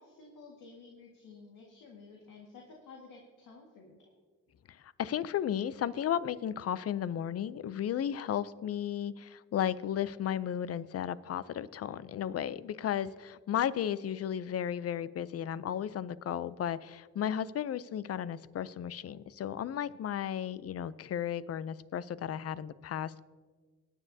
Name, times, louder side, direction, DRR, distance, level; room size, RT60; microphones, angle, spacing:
voice 1, 0.0-4.1, left 4 dB, 80° left, -1 dB, 1.8 m, -53 dB
voice 2, 4.7-23.2, left 9 dB, 50° left, 17 dB, 0.5 m, -34 dB
21.0 x 9.8 x 2.7 m, 1.5 s
cardioid pair, 90°, 32 cm